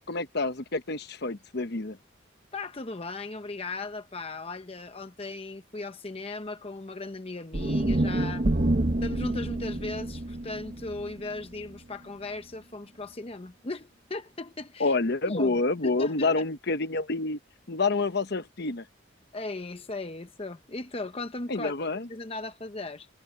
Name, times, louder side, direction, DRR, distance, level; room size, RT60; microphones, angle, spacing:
voice 1, 0.1-2.0 14.8-17.4 17.7-18.8 21.5-22.1, left 3 dB, 55° left, 1.1 m, -28 dB
voice 2, 2.5-8.5 9.0-14.9 15.3-16.4 19.3-23.1, left 2 dB, 30° left, 0.8 m, -37 dB
sound 1, 7.5-11.8, right 1 dB, 40° right, 0.9 m, -28 dB
head